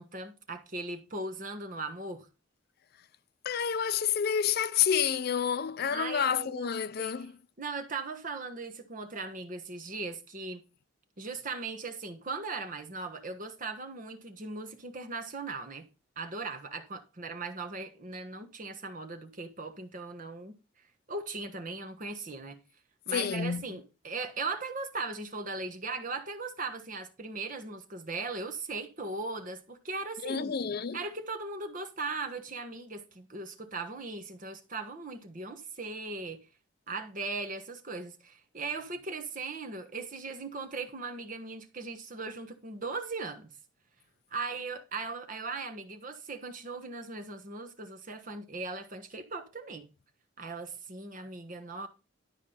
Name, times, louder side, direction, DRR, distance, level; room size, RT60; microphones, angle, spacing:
voice 1, 0.0-2.2 5.9-6.7 7.0-7.3 7.6-10.6 11.2-15.9 16.2-20.5 21.1-22.6 23.1-30.5 30.9-36.5 36.9-43.5 44.3-49.9 50.4-51.9, right 3 dB, 40° right, 1.3 m, -38 dB
voice 2, 3.4-7.3 23.1-23.6 30.2-31.0, left 7 dB, 50° left, 0.4 m, -29 dB
12.0 x 4.8 x 5.6 m
head